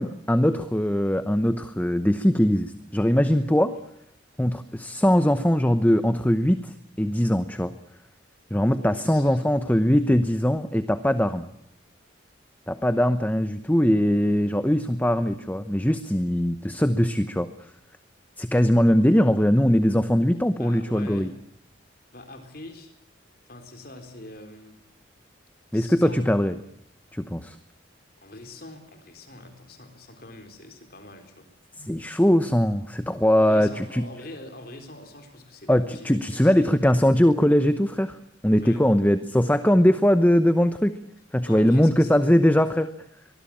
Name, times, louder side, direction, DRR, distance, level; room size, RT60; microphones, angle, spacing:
voice 1, 0.0-3.7 4.4-7.7 8.5-11.5 12.7-17.5 18.4-21.3 25.7-26.5 27.1-27.6 31.8-34.0 35.7-38.2 38.4-40.9 41.3-42.9, equal, 10° left, 11 dB, 0.9 m, -21 dB
voice 2, 8.8-9.8 20.6-21.4 22.1-22.9 23.5-24.8 25.7-26.3 28.2-31.5 31.7-32.0 33.4-36.7 38.5-38.9 41.4-42.1, left 2 dB, 50° left, 6 dB, 4.0 m, -44 dB
24.0 x 20.5 x 8.7 m, 0.73 s
head